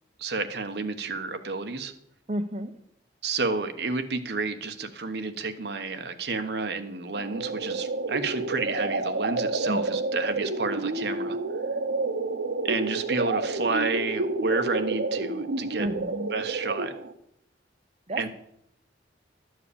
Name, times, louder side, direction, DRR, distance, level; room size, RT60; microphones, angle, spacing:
voice 1, 0.2-1.9 3.2-11.4 12.6-15.9 16.3-16.9 18.2-18.3, right 3 dB, 60° right, 7 dB, 1.0 m, -30 dB
voice 2, 2.3-2.7 9.7-10.2 15.8-16.3 18.1-18.3, right 1 dB, 35° right, 6 dB, 0.9 m, -32 dB
sound 1, 7.1-17.1, right 2 dB, 80° right, 0.8 m, -29 dB
12.0 x 4.7 x 8.5 m, 0.75 s
head